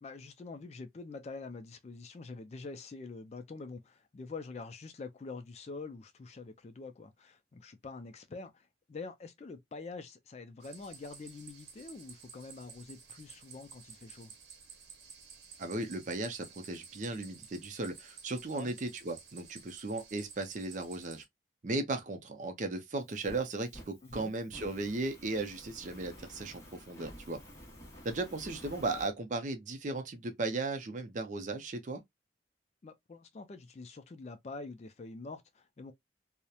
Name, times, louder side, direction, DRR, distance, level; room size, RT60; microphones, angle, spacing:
voice 1, 0.0-14.3 18.5-18.7 24.0-24.3 32.8-35.9, left 3 dB, 35° left, 0.3 m, -46 dB
sound 1, 10.6-21.2, right 6 dB, 70° right, 0.8 m, -53 dB
voice 2, 15.6-21.2 21.6-27.4 28.0-32.0, right 2 dB, 45° right, 0.5 m, -36 dB
Fire, 23.0-29.1, equal, 15° left, 0.8 m, -51 dB
2.8 x 2.0 x 2.2 m
head